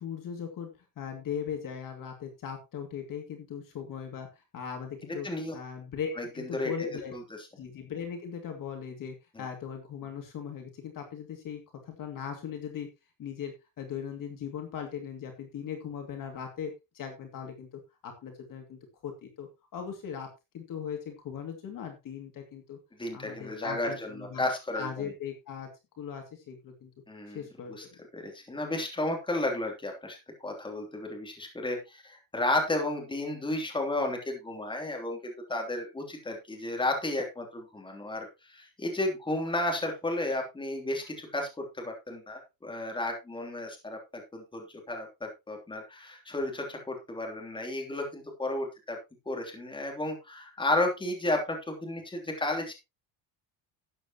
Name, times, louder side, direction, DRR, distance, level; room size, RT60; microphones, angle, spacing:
voice 1, 0.0-5.3 5.5-7.1 7.6-12.9 13.2-20.3 20.5-22.8 23.1-24.4 24.7-25.7 26.0-26.9 27.3-28.0, left 7 dB, 45° left, 4 dB, 2.4 m, -39 dB
voice 2, 5.1-5.5 6.2-6.7 7.1-7.2 9.3-9.4 23.0-25.1 27.1-27.4 27.7-27.8 28.1-49.0 49.3-52.7, left 2 dB, 10° left, 2 dB, 3.0 m, -33 dB
13.0 x 9.4 x 3.0 m, 0.25 s
cardioid pair, 160°, 47 cm